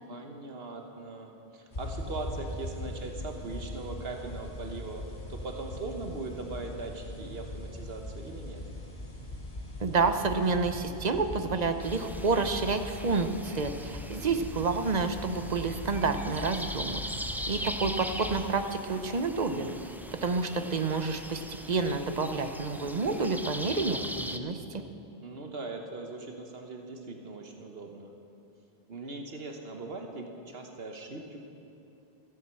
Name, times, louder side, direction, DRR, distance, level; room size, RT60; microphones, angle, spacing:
voice 1, 0.1-5.0 5.3-8.6 17.5-17.8 25.2-28.1 28.9-31.4, right 3 dB, 70° right, 3 dB, 1.4 m, -40 dB
sound 1, 1.7-18.5, left 1 dB, 50° left, 2.0 m, -41 dB
voice 2, 9.8-17.0 17.5-19.7 20.2-21.4 21.7-24.8, right 4 dB, 45° right, 8 dB, 0.9 m, -29 dB
sound 2, 11.8-24.4, equal, 5° right, 0.4 m, -40 dB
14.5 x 10.5 x 7.7 m, 2.8 s
omnidirectional pair, 1.0 m